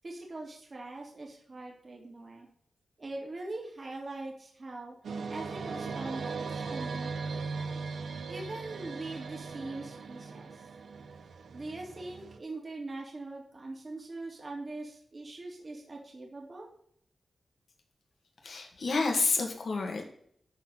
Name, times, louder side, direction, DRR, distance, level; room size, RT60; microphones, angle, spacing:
voice 1, 0.0-2.5 3.0-5.0 5.3-7.5 8.3-10.7 11.5-16.7, right 2 dB, 35° right, -1 dB, 2.4 m, -42 dB
sound 1, 5.0-12.4, right 4 dB, 75° right, 0.8 m, -39 dB
voice 2, 18.4-20.0, left 3 dB, 60° left, 2 dB, 1.9 m, -29 dB
11.5 x 4.3 x 5.6 m, 0.65 s
wide cardioid pair, 145°, 0 cm